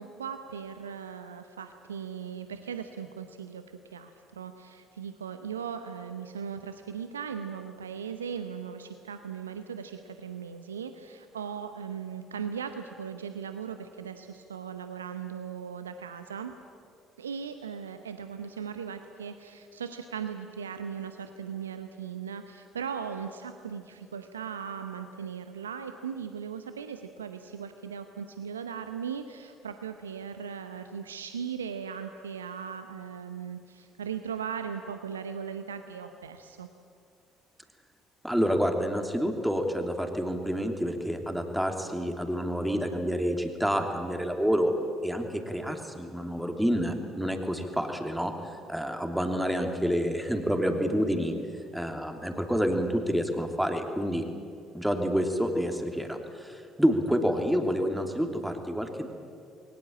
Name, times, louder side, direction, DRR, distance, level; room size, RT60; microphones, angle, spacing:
voice 1, 0.0-16.5 17.2-36.7, right 7 dB, 85° right, 8 dB, 0.8 m, -38 dB
voice 2, 38.2-44.7 45.0-48.3 48.7-51.3 51.7-54.2 54.7-59.1, equal, 5° right, 4 dB, 3.0 m, -28 dB
21.5 x 19.0 x 8.7 m, 2.4 s
figure-of-eight pair, 50°, 0 cm